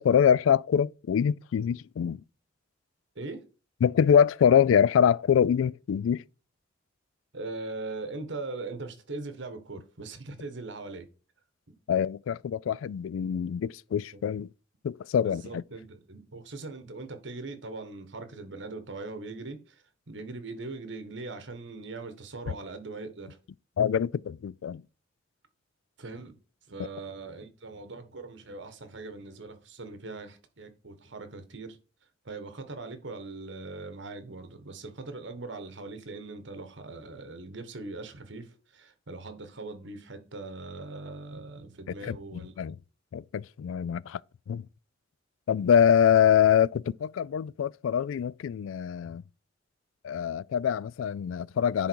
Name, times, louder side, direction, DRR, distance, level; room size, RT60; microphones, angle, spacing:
voice 1, 0.0-2.2 3.8-6.2 11.9-14.5 14.8-15.6 23.8-24.8 42.1-42.8 43.1-44.2 44.5-44.6 45.5-49.2 50.0-51.9, left 8 dB, 90° left, 0.3 m, -24 dB
voice 2, 7.3-11.1 14.1-14.2 15.2-23.4 26.0-26.4 26.7-31.8 32.2-42.7, right 3 dB, 65° right, 1.3 m, -40 dB
10.5 x 3.8 x 4.6 m
head